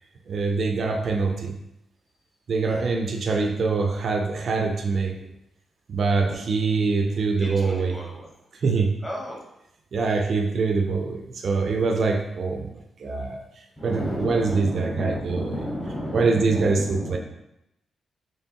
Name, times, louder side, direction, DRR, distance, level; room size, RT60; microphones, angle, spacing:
voice 1, 0.3-1.6 2.5-5.2 5.9-8.0 8.6-9.0 9.9-12.7 13.0-13.4 13.8-15.7 16.1-17.2, right 4 dB, 50° right, 4 dB, 0.4 m, -24 dB
voice 2, 7.4-8.3 9.0-9.4 13.8-17.2, equal, 15° left, -3 dB, 0.9 m, -33 dB
4.4 x 3.2 x 2.8 m, 0.84 s
wide cardioid pair, 150°, 0 cm